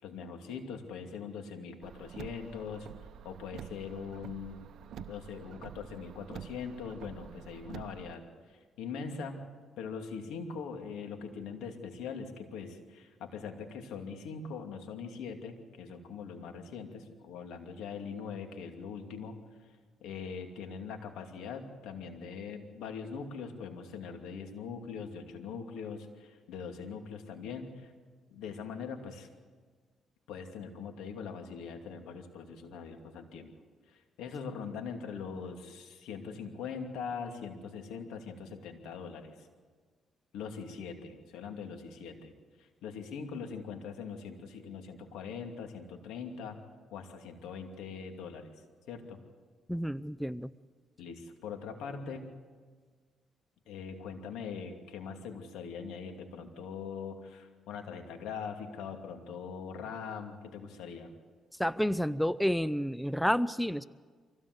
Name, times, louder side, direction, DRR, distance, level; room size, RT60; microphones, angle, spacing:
voice 1, 0.0-2.9 3.2-4.6 5.0-9.4 9.8-19.4 20.0-27.9 28.3-29.3 30.3-33.5 33.9-39.5 40.3-42.3 42.6-46.6 46.9-48.6 48.9-49.2 51.0-52.3 53.7-61.1, left 6 dB, 90° left, 4 dB, 2.6 m, -42 dB
Car, 1.8-8.1, right 8 dB, 70° right, 0.8 m, -48 dB
voice 2, 49.7-50.5 61.6-63.8, equal, 5° left, 16 dB, 0.5 m, -30 dB
24.5 x 16.5 x 8.0 m, 1.5 s
cardioid pair, 90°, 0 cm